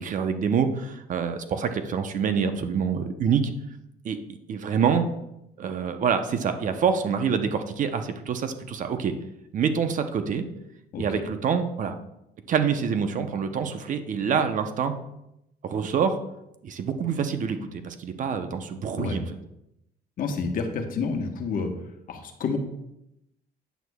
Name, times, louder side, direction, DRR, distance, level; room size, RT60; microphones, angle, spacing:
voice 1, 0.0-3.4 4.0-4.2 4.5-5.0 5.6-9.1 9.5-10.4 11.0-12.0 12.5-14.9 15.6-16.2 16.6-19.3, right 6 dB, 50° right, 8 dB, 0.8 m, -26 dB
voice 2, 20.2-21.7 22.1-22.6, left 5 dB, 55° left, 5 dB, 1.2 m, -29 dB
9.2 x 7.9 x 2.3 m, 0.84 s
cardioid pair, 110°, 17 cm